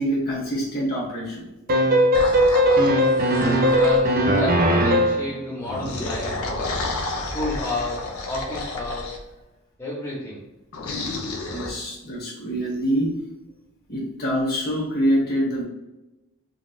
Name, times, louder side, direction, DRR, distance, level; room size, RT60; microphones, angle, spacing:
voice 1, 0.0-1.5 11.5-13.2 13.9-15.7, equal, 45° left, -3 dB, 1.1 m, -25 dB
sound 1, 1.7-5.3, equal, 40° right, 0.4 m, -18 dB
sound 2, 2.1-4.5 5.6-9.2 10.7-11.7, left 2 dB, 85° left, 0.6 m, -31 dB
voice 2, 3.7-6.4 7.1-9.1 9.8-10.4, left 2 dB, 15° left, -7 dB, 0.7 m, -30 dB
4.0 x 2.4 x 2.3 m, 1.0 s
head